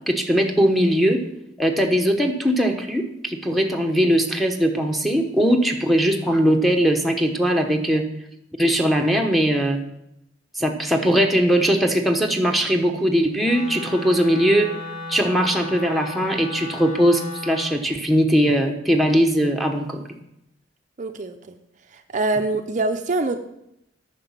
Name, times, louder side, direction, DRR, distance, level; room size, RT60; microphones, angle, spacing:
voice 1, 0.1-1.2 1.6-8.0 8.6-9.8 10.6-14.7 15.1-20.0, equal, ahead, 1 dB, 1.0 m, -20 dB
Wind instrument woodwind instrument, 13.4-17.8, left 2 dB, 45° left, 1.7 m, -34 dB
voice 2, 21.0-21.6 21.9-23.4, right 2 dB, 40° right, 6 dB, 0.6 m, -25 dB
9.8 x 6.0 x 7.3 m, 0.82 s
head